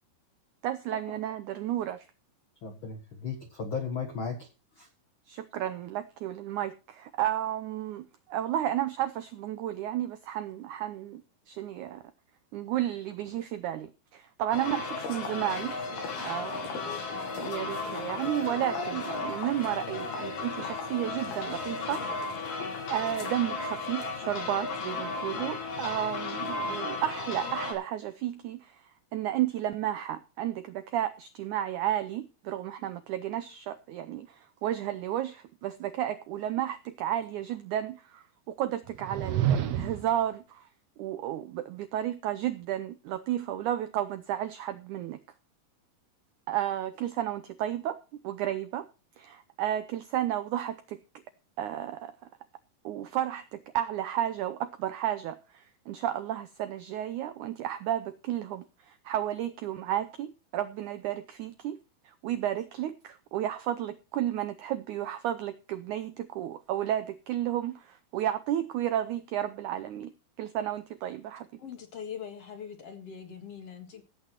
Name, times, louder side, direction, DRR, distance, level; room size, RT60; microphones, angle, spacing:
voice 1, 0.6-2.1 5.3-12.0 12.5-15.8 16.2-17.0 17.4-22.0 22.4-28.8 29.1-40.7 41.0-45.2 46.5-48.0 48.2-48.9 49.2-51.0 51.6-52.2 52.8-61.8 62.0-70.1 70.4-71.5, right 12 dB, 85° right, 1.7 m, -32 dB
voice 2, 2.6-4.5 4.8-4.9, left 5 dB, 70° left, 1.2 m, -35 dB
sound 1, 14.5-27.7, left 3 dB, 85° left, 4.7 m, -35 dB
sound 2, 38.9-40.2, right 10 dB, 65° right, 1.7 m, -28 dB
voice 3, 71.6-74.0, left 7 dB, 50° left, 2.4 m, -42 dB
16.0 x 8.4 x 4.4 m
omnidirectional pair, 4.4 m